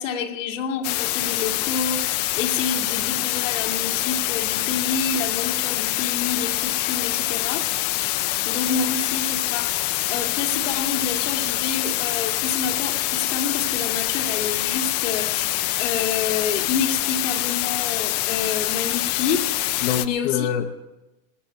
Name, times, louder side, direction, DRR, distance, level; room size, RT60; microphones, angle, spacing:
voice 1, 0.0-7.7 8.5-9.8 10.1-20.5, left 6 dB, 80° left, 3 dB, 2.3 m, -28 dB
sound 1, 0.8-20.1, left 17 dB, 35° left, 0.4 m, -25 dB
voice 2, 8.1-8.4 19.8-20.7, left 8 dB, 60° left, 3 dB, 1.0 m, -26 dB
20.0 x 7.3 x 8.4 m, 1.0 s
supercardioid pair, 160°, 37 cm